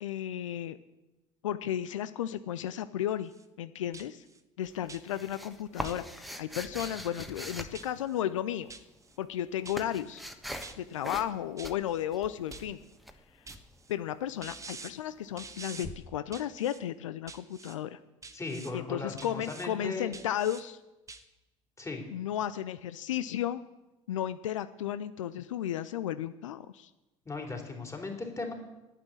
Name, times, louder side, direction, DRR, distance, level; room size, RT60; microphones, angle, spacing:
voice 1, 0.0-0.8 1.4-3.3 3.6-4.2 4.6-8.7 9.2-10.2 10.8-12.8 13.9-18.0 18.7-20.8 22.1-23.6 24.1-26.9, left 11 dB, 80° left, 13 dB, 0.4 m, -34 dB
sound 1, 3.1-3.5 3.9-4.4 4.9-5.4 5.8-6.3 6.8-7.3 7.7-8.2 8.7-9.2 9.7-10.1 10.6-11.1 11.6-12.0 12.5-13.0 13.5-13.9 14.4-14.9 15.4-15.9 16.3-16.8 17.3-17.8 18.2-18.7 19.2-19.7 20.1-20.6 21.1-21.2, right 4 dB, 20° right, 1.2 m, -47 dB
sound 2, 4.6-8.5 9.2-10.8 11.0-11.4 11.6-13.6 15.8-15.9, equal, ahead, 1.3 m, -42 dB
voice 2, 18.3-20.1 21.8-22.0 27.2-28.5, left 3 dB, 20° left, 2 dB, 3.1 m, -37 dB
9.7 x 8.3 x 8.5 m, 1.0 s
hypercardioid pair, 65°, 16 cm